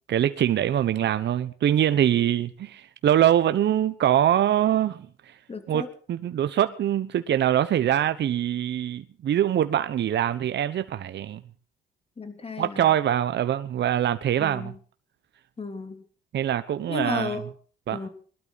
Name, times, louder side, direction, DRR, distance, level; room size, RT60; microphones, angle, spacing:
voice 1, 0.1-5.1 5.7-11.4 12.6-14.7 16.3-17.4 17.9-18.0, right 11 dB, 60° right, 1.0 m, -23 dB
voice 2, 5.5-5.9 12.2-12.9 14.4-14.8 15.6-16.0 16.9-17.5 17.9-18.1, left 4 dB, 30° left, 3.2 m, -33 dB
21.5 x 12.5 x 4.1 m
cardioid pair, 90°, 20 cm